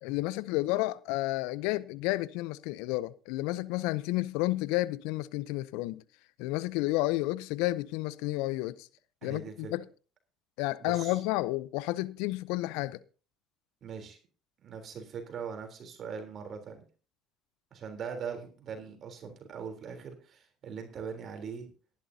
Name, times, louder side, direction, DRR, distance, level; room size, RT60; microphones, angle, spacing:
voice 1, 0.0-6.0 6.4-8.9 9.2-9.8 10.6-13.0, left 18 dB, 75° left, 0.6 m, -31 dB
voice 2, 9.2-9.7 10.8-11.2 13.8-14.2 14.6-16.8 17.7-21.7, right 6 dB, 50° right, 3.5 m, -41 dB
18.0 x 11.0 x 2.8 m
hypercardioid pair, 70°, 0 cm